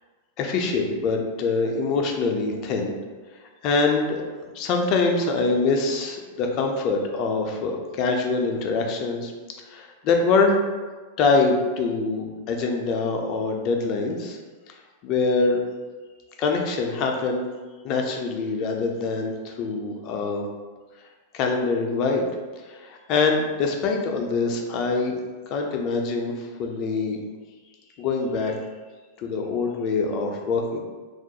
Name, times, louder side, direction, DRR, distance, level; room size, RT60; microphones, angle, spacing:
voice 1, 0.4-2.9 3.6-4.2 4.5-9.3 9.7-10.6 11.2-14.4 15.0-15.6 16.4-17.4 17.8-20.5 21.3-22.2 22.7-25.2 25.5-27.2 28.0-28.6 29.2-30.8, left 4 dB, 40° left, 2 dB, 0.4 m, -24 dB
2.3 x 2.0 x 2.8 m, 1.3 s
figure-of-eight pair, 95°, 0 cm